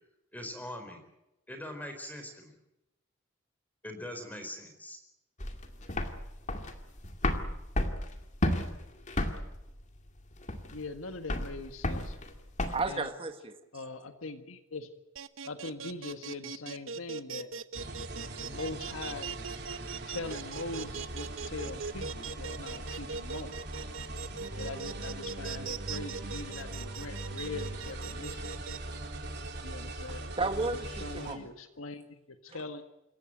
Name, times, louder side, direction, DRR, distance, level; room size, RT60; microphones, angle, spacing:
voice 1, 0.3-1.0 1.5-2.5 3.8-5.0, left 1 dB, 10° left, 6 dB, 4.5 m, -42 dB
sound 1, 5.4-12.9, left 1 dB, 35° left, 2.2 m, -33 dB
voice 2, 10.7-12.2 12.9-13.1 13.7-14.9 15.4-17.5 18.4-19.3 20.1-23.5 24.5-28.4 29.6-30.3 31.0-32.0 32.4-32.8, left 3 dB, 85° left, 8 dB, 1.7 m, -41 dB
voice 3, 12.7-13.6 30.4-31.5 32.5-32.6, right 3 dB, 25° right, 7 dB, 1.6 m, -33 dB
sound 2, 15.2-28.8, right 6 dB, 75° right, 1.0 m, -40 dB
sound 3, 17.7-31.3, right 2 dB, 55° right, 3.9 m, -41 dB
27.0 x 15.0 x 9.2 m, 0.91 s
head